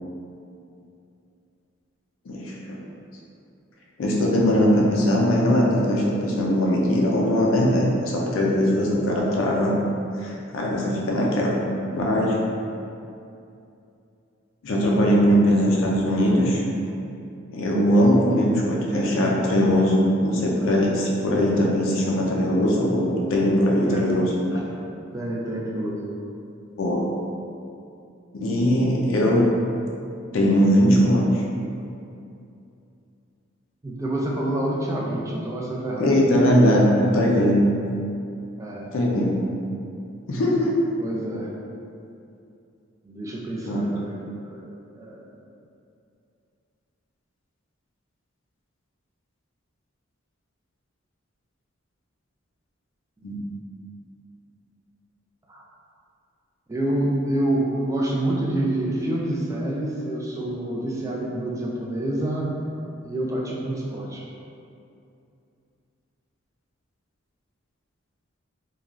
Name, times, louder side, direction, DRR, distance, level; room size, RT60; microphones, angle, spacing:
voice 1, 2.3-2.8 4.0-9.8 10.2-11.6 11.9-12.4 14.6-16.6 17.5-24.3 26.8-27.1 28.3-29.5 30.3-31.4 36.0-37.6 38.9-39.4 40.3-40.7 43.7-43.8 53.2-53.4, equal, 70° left, -3 dB, 0.4 m, -20 dB
voice 2, 25.1-26.1 33.8-36.1 38.6-38.9 41.0-41.5 43.0-44.1 44.4-44.6 44.9-45.3 55.5-55.6 56.7-62.5 63.0-64.2, right 1 dB, 15° right, -3 dB, 0.3 m, -27 dB
3.0 x 2.2 x 2.4 m, 2.6 s
head